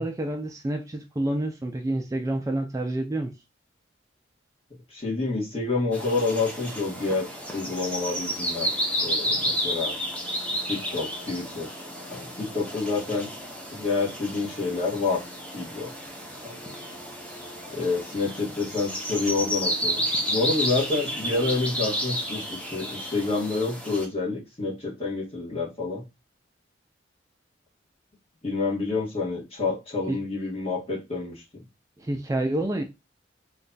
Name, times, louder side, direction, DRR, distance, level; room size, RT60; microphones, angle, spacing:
voice 1, 0.0-3.3 30.1-30.2 32.0-32.8, right 1 dB, 15° right, 0.4 m, -28 dB
voice 2, 4.9-7.3 7.5-8.7 9.0-9.9 10.7-11.8 12.1-13.3 13.7-15.2 15.5-15.9 16.4-16.5 17.7-26.0 28.4-31.6, left 3 dB, 30° left, 1.4 m, -28 dB
sound 1, 5.9-24.1, equal, 5° left, 0.8 m, -31 dB
3.1 x 2.3 x 3.9 m
head